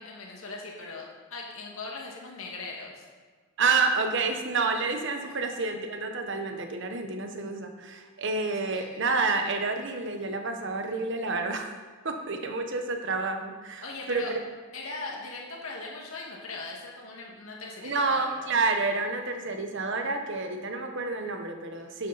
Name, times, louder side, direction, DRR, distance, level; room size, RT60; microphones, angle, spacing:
voice 1, 0.0-3.1 5.2-5.3 8.7-9.0 13.8-14.3 14.7-18.3 21.8-22.0, left 3 dB, 85° left, -2 dB, 2.1 m, -40 dB
voice 2, 3.6-11.7 12.0-14.2 17.8-22.1, right 3 dB, 60° right, 5 dB, 1.2 m, -29 dB
11.0 x 9.0 x 4.2 m, 1.4 s
head